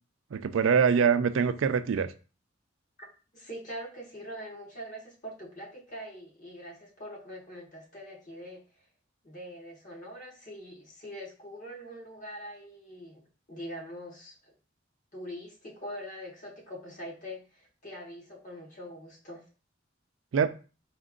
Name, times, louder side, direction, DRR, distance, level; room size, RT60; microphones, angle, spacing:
voice 1, 0.3-2.1 20.3-20.5, right 6 dB, 85° right, 0.4 m, -24 dB
voice 2, 3.3-8.6 9.2-13.2 13.5-14.3 15.1-19.4, equal, 40° left, 1.4 m, -43 dB
4.4 x 2.5 x 3.7 m
head